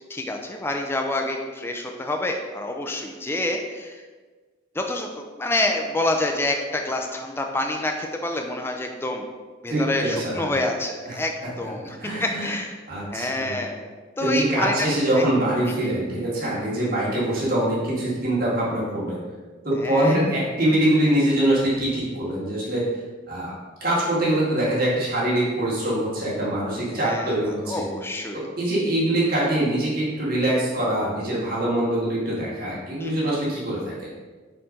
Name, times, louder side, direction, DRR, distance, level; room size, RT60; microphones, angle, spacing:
voice 1, 0.1-4.0 4.8-9.3 9.6-11.3 11.6-12.8 13.1-13.9 14.2-14.7 15.1-15.2 15.7-15.8 19.8-20.2 26.9-28.5 33.0-33.2, left 2 dB, 10° left, 3 dB, 0.4 m, -27 dB
voice 2, 9.7-10.5 11.1-11.2 11.8-12.5 12.9-13.6 14.2-19.2 19.6-22.9 23.3-23.5 23.8-27.9 28.3-34.1, right 1 dB, 45° right, -7 dB, 1.9 m, -24 dB
4.4 x 4.3 x 5.1 m, 1.4 s
head